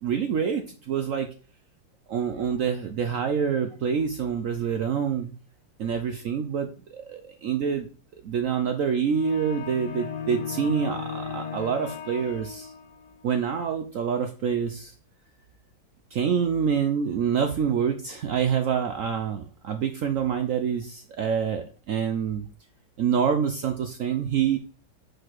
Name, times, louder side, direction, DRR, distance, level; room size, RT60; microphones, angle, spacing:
voice 1, 0.0-1.3 2.1-5.3 5.8-7.9 8.2-12.7 13.2-14.9 16.1-22.5 23.0-24.6, right 7 dB, 70° right, 7 dB, 0.7 m, -26 dB
sound 1, 9.1-13.1, left 6 dB, 65° left, 1.6 m, -36 dB
5.2 x 4.1 x 6.0 m, 0.38 s
omnidirectional pair, 2.0 m